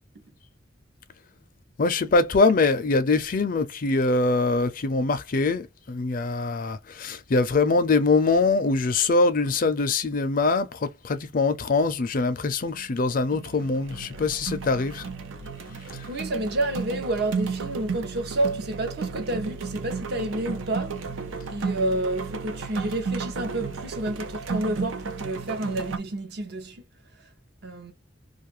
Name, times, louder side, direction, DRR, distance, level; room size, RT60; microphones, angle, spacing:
voice 1, 1.8-15.0 15.9-16.1, left 3 dB, 45° left, 0.5 m, -23 dB
sound 1, 12.7-13.0 13.3-26.0, right 5 dB, 90° right, 0.6 m, -33 dB
voice 2, 16.1-21.0 21.5-26.8 27.6-27.9, right 1 dB, 55° right, 0.7 m, -29 dB
2.6 x 2.4 x 3.0 m
head